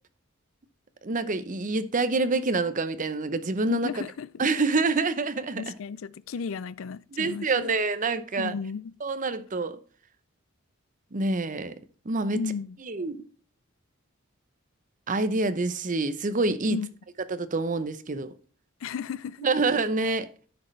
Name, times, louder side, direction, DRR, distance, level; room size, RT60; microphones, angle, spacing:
voice 1, 1.0-4.1 4.4-5.7 7.1-8.5 9.0-9.8 11.1-11.7 12.0-12.4 12.8-13.2 15.1-16.8 17.3-18.3 19.4-20.3, right 3 dB, 40° right, 0.7 m, -27 dB
voice 2, 3.7-4.4 5.6-7.7 8.4-8.9 12.3-12.8 16.7-16.9 18.8-19.5, left 5 dB, 75° left, 0.4 m, -34 dB
10.5 x 6.5 x 3.2 m
head